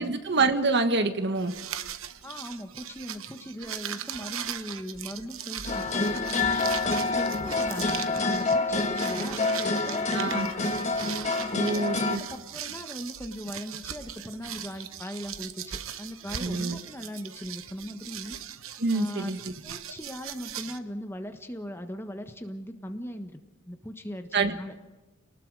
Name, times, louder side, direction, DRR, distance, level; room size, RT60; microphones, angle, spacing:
voice 1, 0.0-1.5 10.1-10.5 11.5-12.2 16.4-16.8 18.8-19.5 24.3-24.5, right 3 dB, 55° right, 8 dB, 1.5 m, -26 dB
sound 1, 1.4-20.8, right 9 dB, 80° right, 1.0 m, -39 dB
voice 2, 2.2-6.3 6.8-10.8 11.4-18.4 18.9-23.4 23.6-24.7, equal, 10° left, 6 dB, 1.4 m, -39 dB
sound 2, 5.6-12.2, left 3 dB, 35° left, 1.6 m, -27 dB
29.5 x 19.5 x 4.9 m, 1.1 s
head